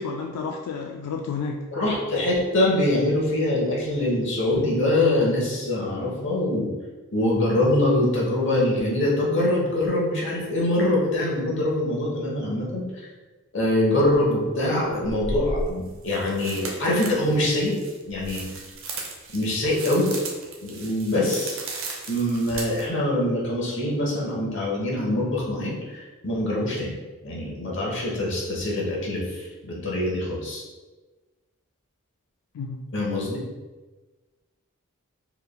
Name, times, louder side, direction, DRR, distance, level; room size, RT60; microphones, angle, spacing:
voice 1, 0.0-1.6 32.5-32.8, left 5 dB, 85° left, 3 dB, 0.3 m, -31 dB
voice 2, 1.7-6.7 7.1-13.1 13.5-17.8 18.1-18.4 19.3-20.1 20.6-21.6 22.1-26.9 27.2-30.6 32.9-33.4, left 1 dB, 55° left, -3 dB, 1.1 m, -24 dB
sound 1, 14.0-14.1 15.0-22.8, right 2 dB, 65° right, 0.7 m, -35 dB
4.5 x 3.3 x 2.2 m, 1.3 s
head